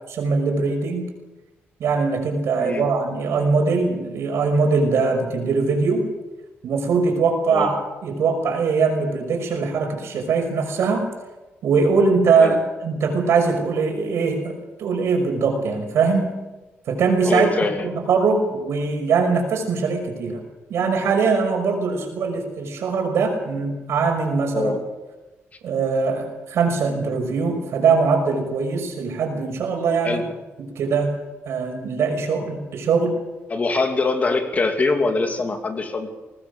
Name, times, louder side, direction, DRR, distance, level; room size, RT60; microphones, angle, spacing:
voice 1, 0.1-1.1 1.8-6.1 6.6-7.7 8.0-11.1 11.6-16.3 16.9-17.5 17.8-20.4 20.7-24.7 25.6-30.2 30.8-31.1 31.5-33.2, right 4 dB, 75° right, 4 dB, 5.9 m, -21 dB
voice 2, 17.2-17.9 24.5-24.8 30.0-30.3 33.5-36.1, left 3 dB, 35° left, 5 dB, 2.8 m, -23 dB
22.0 x 19.0 x 6.9 m, 1.1 s
cardioid pair, 110°, 5 cm